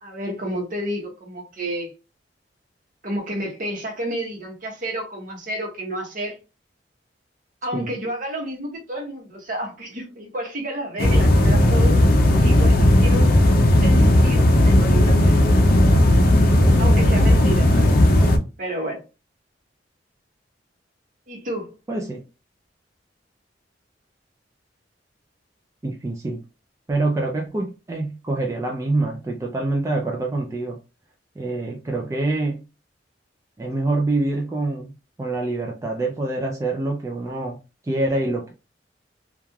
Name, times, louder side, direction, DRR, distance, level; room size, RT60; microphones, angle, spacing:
voice 1, 0.0-1.9 3.0-6.4 7.6-12.0 12.4-13.3 13.8-15.4 16.8-17.9 18.6-19.0 21.3-21.7, right 1 dB, 50° right, 0.9 m, -30 dB
sound 1, 11.0-18.4, left 1 dB, 55° left, 0.5 m, -15 dB
voice 2, 21.9-22.2 25.8-26.4 26.9-30.8 31.4-32.6 33.6-34.9 35.2-37.6 37.8-38.5, right 2 dB, 15° right, 0.3 m, -25 dB
3.1 x 2.3 x 2.2 m
head